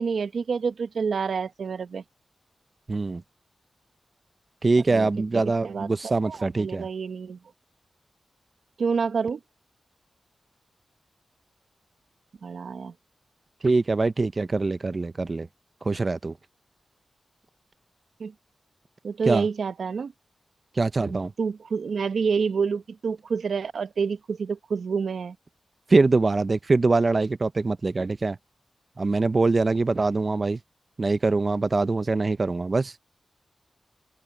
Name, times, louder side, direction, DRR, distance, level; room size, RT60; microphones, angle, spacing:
voice 1, 0.0-2.0 4.9-5.9 6.2-7.4 8.8-9.4 12.4-12.9 18.2-18.3 19.0-20.1 21.0-25.4, right 5 dB, 75° right, 0.9 m, -28 dB
voice 2, 2.9-3.2 4.6-6.9 13.6-15.5 15.8-16.3 19.3-19.5 20.8-21.3 25.9-28.4 29.0-30.6 31.0-32.9, right 3 dB, 35° right, 0.6 m, -23 dB
open air
wide cardioid pair, 125°, 0 cm